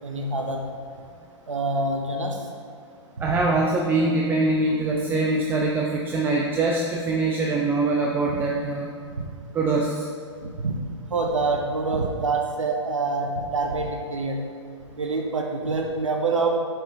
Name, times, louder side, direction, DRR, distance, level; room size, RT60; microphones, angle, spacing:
voice 1, 0.0-0.6 1.5-2.4 3.2-3.4 8.3-8.4 9.2-9.3 10.4-10.8 11.1-14.4 15.0-16.6, right 3 dB, 90° right, 2 dB, 0.7 m, -26 dB
voice 2, 3.2-8.9 9.5-10.1, right 2 dB, 15° right, -1 dB, 0.3 m, -23 dB
5.5 x 5.3 x 3.4 m, 2.2 s
hypercardioid pair, 125°, 16 cm